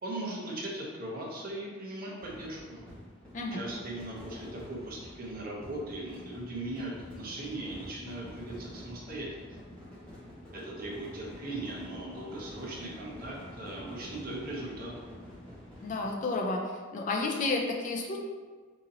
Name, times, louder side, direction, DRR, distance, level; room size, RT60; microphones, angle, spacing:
voice 1, 0.0-2.8 3.5-9.5 10.5-14.9, right 1 dB, 45° right, -4 dB, 0.8 m, -39 dB
sound 1, 2.2-16.1, equal, 5° left, 1.1 m, -47 dB
voice 2, 15.8-16.6 16.9-18.2, left 3 dB, 40° left, 1 dB, 0.4 m, -31 dB
3.8 x 2.9 x 2.7 m, 1.5 s
head